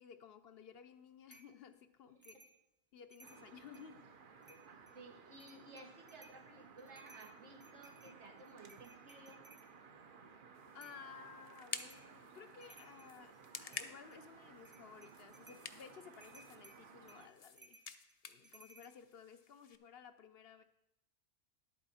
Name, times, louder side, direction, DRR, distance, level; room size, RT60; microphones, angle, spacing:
voice 1, 0.0-2.5 2.9-4.1 4.5-4.6 10.7-17.8 18.3-20.6, left 7 dB, 65° left, 10 dB, 0.9 m, -56 dB
sound 1, 1.3-1.6 2.2-2.6 3.0-3.9 4.4-5.0 5.4-6.4 6.8-9.7 10.8-11.1 11.7-12.1 12.5-13.2 13.7-14.2 14.6-15.7 16.2-18.9, right 2 dB, 15° right, 0.4 m, -62 dB
sound 2, 3.2-17.3, right 5 dB, 50° right, 0.9 m, -59 dB
voice 2, 4.9-9.5, right 2 dB, 85° right, 2 dB, 1.9 m, -56 dB
sound 3, 10.5-19.8, left 6 dB, 45° left, 0.5 m, -52 dB
11.0 x 8.4 x 4.2 m, 0.87 s
omnidirectional pair, 1.1 m